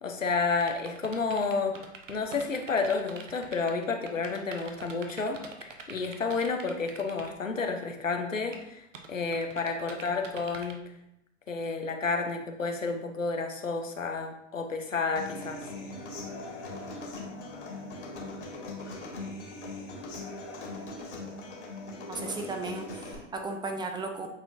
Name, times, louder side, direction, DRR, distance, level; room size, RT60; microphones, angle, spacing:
voice 1, 0.0-1.7 2.1-10.8 11.5-15.6, left 4 dB, 90° left, 5 dB, 0.9 m, -31 dB
sound 1, 0.5-7.3 8.5-8.6 8.9-10.7, right 5 dB, 75° right, 0.9 m, -45 dB
Human voice / Acoustic guitar, 15.2-23.1, left 2 dB, 65° left, 2.1 m, -40 dB
voice 2, 22.1-24.3, right 3 dB, 10° right, 4 dB, 0.5 m, -35 dB
8.4 x 4.3 x 2.7 m, 0.82 s
figure-of-eight pair, 95°, 37 cm